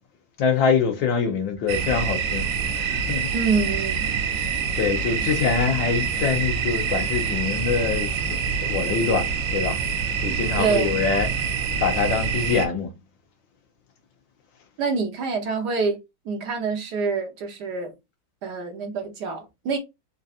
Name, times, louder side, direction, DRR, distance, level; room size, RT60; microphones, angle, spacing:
voice 1, 0.4-2.5 2.8-3.3 4.8-9.8 10.2-11.3 11.8-12.9, left 5 dB, 90° left, 1.6 m, -24 dB
sound 1, 1.7-12.7, right 6 dB, 85° right, 1.4 m, -26 dB
voice 2, 3.3-4.1 10.6-11.0 14.8-16.0 16.2-17.9 18.4-19.8, right 5 dB, 65° right, 1.4 m, -26 dB
4.4 x 2.7 x 2.4 m
omnidirectional pair, 2.0 m